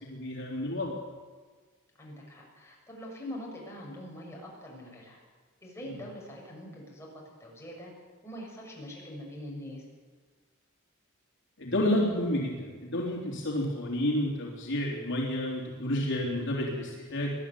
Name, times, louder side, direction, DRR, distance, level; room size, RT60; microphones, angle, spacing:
voice 1, 0.1-1.0 11.6-17.3, left 1 dB, 60° left, -2 dB, 3.5 m, -30 dB
voice 2, 2.0-5.2 5.6-7.9 8.2-9.8, equal, 15° left, -2 dB, 6.9 m, -43 dB
21.5 x 12.0 x 9.9 m, 1.4 s
head